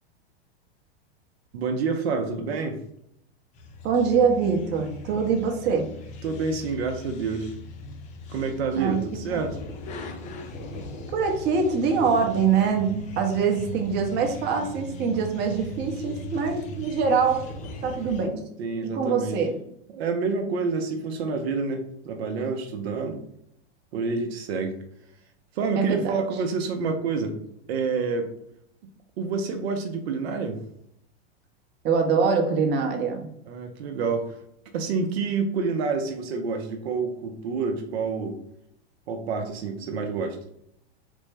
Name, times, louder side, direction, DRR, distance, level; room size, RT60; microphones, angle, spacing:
voice 1, 1.5-2.8 6.2-7.5 8.3-9.6 18.6-19.4 19.9-23.2 23.9-24.8 25.5-27.4 27.7-28.3 29.2-30.6 33.5-34.4 34.7-38.4 39.1-40.4, right 4 dB, 70° right, 5 dB, 0.6 m, -28 dB
sound 1, 3.5-18.3, equal, 25° left, 0.4 m, -39 dB
voice 2, 3.8-5.9 8.8-9.0 9.3-9.4 11.1-17.5 17.8-18.4 18.8-19.6 25.8-26.1 31.8-33.3, right 5 dB, 30° right, 3 dB, 0.7 m, -24 dB
3.4 x 2.0 x 3.2 m, 0.73 s
hypercardioid pair, 120°, 32 cm